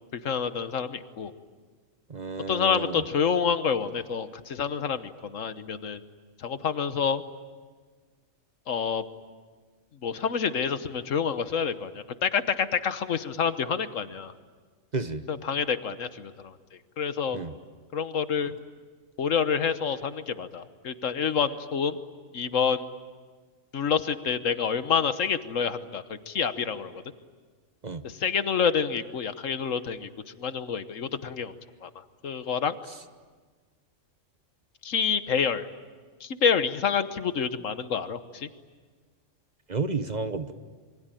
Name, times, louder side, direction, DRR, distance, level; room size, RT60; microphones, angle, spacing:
voice 1, 0.1-1.3 2.5-6.0 6.4-7.2 8.7-9.0 10.0-14.3 15.3-16.5 17.0-17.4 17.9-18.5 19.2-22.0 22.3-22.8 23.7-26.9 28.0-30.1 30.4-31.5 31.8-31.9 32.2-32.8 34.8-35.7 36.2-38.5, left 6 dB, 80° left, 11 dB, 1.5 m, -28 dB
voice 2, 2.1-3.0 14.9-15.2 17.3-17.5 27.8-28.0 39.7-40.5, right 4 dB, 35° right, 10 dB, 1.1 m, -31 dB
27.0 x 24.0 x 9.1 m, 1.5 s
omnidirectional pair, 1.3 m